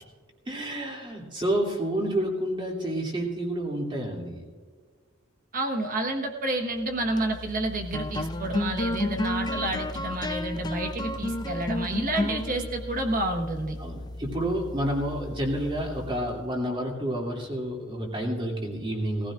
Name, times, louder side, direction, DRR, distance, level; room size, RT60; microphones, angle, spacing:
voice 1, 0.5-4.4 13.8-19.3, right 1 dB, 25° right, -2 dB, 2.6 m, -29 dB
voice 2, 5.5-13.8, right 1 dB, 40° right, 3 dB, 1.3 m, -29 dB
sound 1, 6.9-16.6, left 1 dB, 20° left, 0.5 m, -33 dB
19.5 x 15.5 x 2.5 m, 1.6 s
head